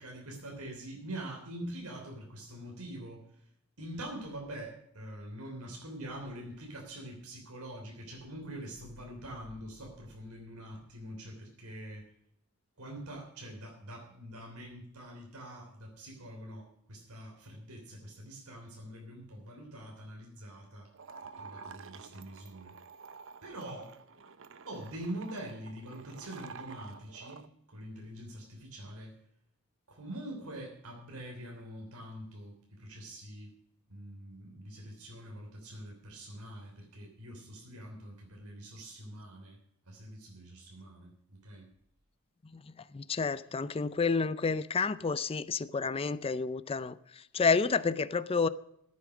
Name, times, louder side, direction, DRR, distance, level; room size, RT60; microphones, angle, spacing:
voice 1, 0.0-3.2 3.8-12.0 12.8-20.9 21.4-22.7 23.4-23.9 24.7-27.4 27.7-29.1 29.9-33.5 33.9-39.6 39.9-41.7, right 1 dB, 80° right, 3.3 m, -44 dB
sound 1, 20.9-27.5, right 5 dB, 60° right, 0.8 m, -50 dB
voice 2, 42.9-48.5, left 4 dB, 25° left, 0.4 m, -30 dB
15.0 x 8.4 x 6.2 m
head